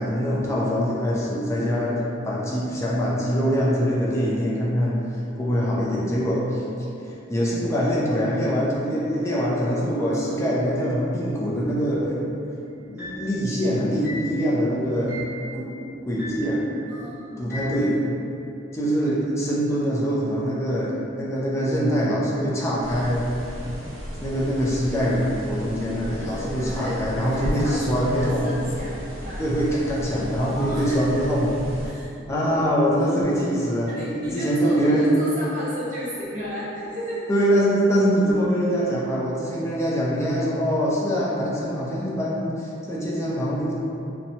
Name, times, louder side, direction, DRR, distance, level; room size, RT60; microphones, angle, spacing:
voice 1, 0.0-5.0 5.4-6.6 7.0-12.2 12.9-15.2 15.5-15.7 16.1-16.6 17.4-17.9 18.7-23.3 24.2-28.5 29.4-31.5 32.3-35.2 37.3-43.7, equal, 15° left, -6 dB, 0.4 m, -23 dB
sound 1, 13.0-13.4 14.0-14.4 15.1-15.4 16.2-16.6 17.5-17.8, left 1 dB, 10° right, 0.9 m, -36 dB
voice 2, 16.9-17.5 26.2-29.4 30.4-31.2 31.8-32.6 33.8-37.2, equal, 40° right, -9 dB, 0.7 m, -34 dB
sound 2, 22.8-31.9, equal, 80° right, 1.0 m, -35 dB
2.8 x 2.1 x 2.7 m, 2.7 s
head